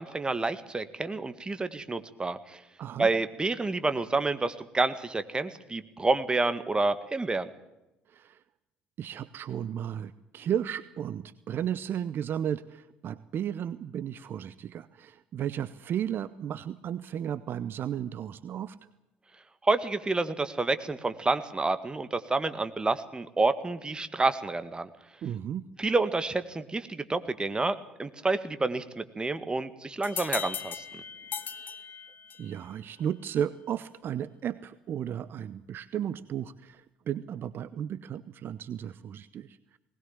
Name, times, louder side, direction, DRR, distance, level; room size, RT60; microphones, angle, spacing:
voice 1, 0.0-2.6 3.0-7.5 19.6-24.9 25.8-31.0, right 3 dB, 20° right, 11 dB, 1.8 m, -29 dB
voice 2, 2.8-3.1 8.1-8.4 9.0-18.8 25.2-25.7 31.5-31.7 32.4-39.8, right 9 dB, 50° right, 15 dB, 0.8 m, -34 dB
sound 1, 30.0-32.6, left 7 dB, 45° left, 1.6 m, -38 dB
20.0 x 19.0 x 7.3 m, 0.95 s
hypercardioid pair, 55°, 4 cm